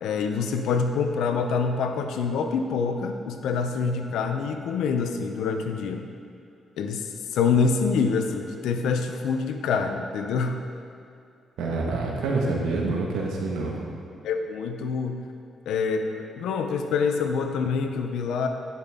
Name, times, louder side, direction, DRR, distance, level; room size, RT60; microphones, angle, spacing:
voice 1, 0.0-6.1 6.8-10.6 14.2-15.2 15.7-18.5, left 5 dB, 85° left, 6 dB, 0.6 m, -26 dB
voice 2, 11.6-13.8, right 3 dB, 85° right, -1 dB, 1.2 m, -27 dB
10.5 x 5.8 x 3.6 m, 2.4 s
cardioid pair, 75°, 0 cm